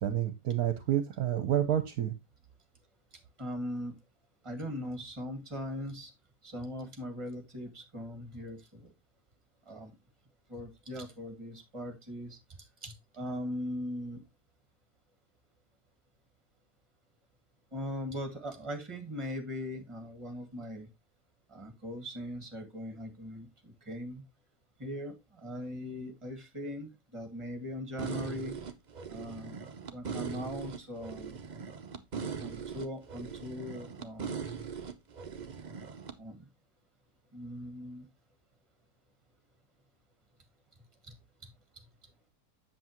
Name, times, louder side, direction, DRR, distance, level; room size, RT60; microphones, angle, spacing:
voice 1, 0.0-2.1, right 11 dB, 65° right, 10 dB, 1.2 m, -29 dB
voice 2, 3.1-4.0 4.4-6.1 6.4-8.9 9.7-10.0 10.5-12.4 12.8-14.2 17.7-20.9 21.5-24.2 24.8-28.6 29.1-29.6 29.9-31.4 32.4-34.3 36.2-36.5 37.3-38.1 41.0-41.1 41.4-41.8, equal, 20° right, 7 dB, 1.8 m, -40 dB
sound 1, 28.0-36.2, right 6 dB, 45° right, 0.6 m, -40 dB
7.8 x 7.3 x 3.0 m, 0.21 s
omnidirectional pair, 1.8 m